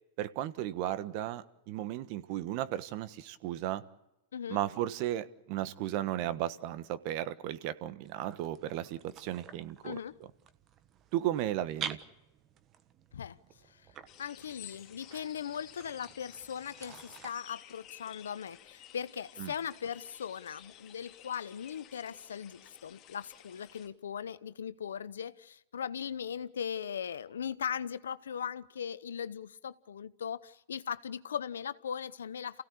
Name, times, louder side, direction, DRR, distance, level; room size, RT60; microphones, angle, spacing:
voice 1, 0.2-3.8 4.5-10.0 11.1-12.0 19.4-19.5, right 13 dB, 55° right, 13 dB, 1.3 m, -35 dB
sound 1, 8.0-17.3, right 8 dB, 35° right, 1.3 m, -48 dB
voice 2, 9.8-10.2 13.1-13.4 13.7-13.9 14.2-32.6, left 8 dB, 85° left, 15 dB, 0.8 m, -39 dB
sound 2, 14.1-23.9, left 12 dB, 40° left, 2.6 m, -54 dB
28.5 x 16.5 x 8.4 m, 0.94 s
hypercardioid pair, 110°, 0 cm